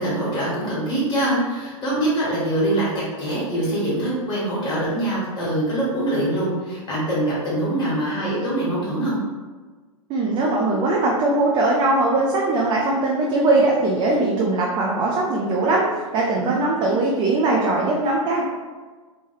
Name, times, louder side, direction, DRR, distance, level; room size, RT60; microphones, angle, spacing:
voice 1, 0.0-2.9 3.2-9.1 16.4-16.5 16.8-16.9, right 1 dB, 25° left, -7 dB, 1.5 m, -24 dB
voice 2, 10.1-15.8 16.1-18.4, right 2 dB, 25° right, -3 dB, 0.4 m, -20 dB
3.1 x 2.2 x 3.1 m, 1.4 s
hypercardioid pair, 105°, 18 cm